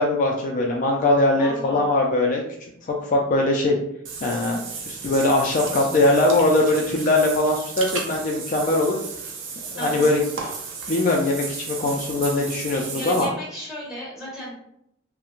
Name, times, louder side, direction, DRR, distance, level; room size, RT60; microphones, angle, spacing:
voice 1, 0.0-2.4 2.9-3.8 4.2-4.6 4.9-9.0 9.7-10.2 10.9-13.3, left 2 dB, 45° left, -1 dB, 0.3 m, -21 dB
voice 2, 1.3-1.9 9.8-10.1 12.7-14.5, equal, 5° right, -6 dB, 1.2 m, -35 dB
Water / Bathtub (filling or washing), 4.1-13.3, right 5 dB, 80° right, 0.5 m, -34 dB
2.9 x 2.0 x 2.4 m, 0.74 s
head